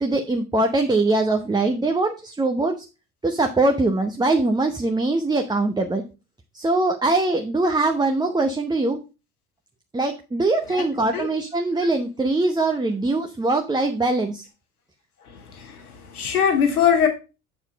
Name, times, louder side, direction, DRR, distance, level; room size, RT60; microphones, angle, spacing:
voice 1, 0.0-2.8 3.2-6.0 6.5-9.0 9.9-14.4, right 2 dB, 10° right, 3 dB, 0.8 m, -22 dB
voice 2, 15.2-17.1, left 8 dB, 85° left, 6 dB, 1.6 m, -22 dB
7.2 x 4.5 x 5.1 m, 0.30 s
hypercardioid pair, 65°, 43 cm